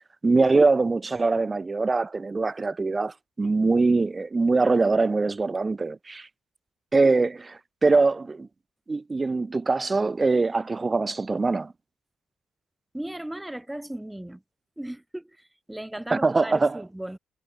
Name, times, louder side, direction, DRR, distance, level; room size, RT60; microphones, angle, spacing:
voice 1, 0.2-6.3 6.9-8.5 8.9-11.7 16.1-16.8, right 3 dB, 25° right, 2.5 m, -23 dB
voice 2, 12.9-14.4 14.8-17.2, right 1 dB, 5° right, 3.4 m, -37 dB
cardioid pair, 90°, 0 cm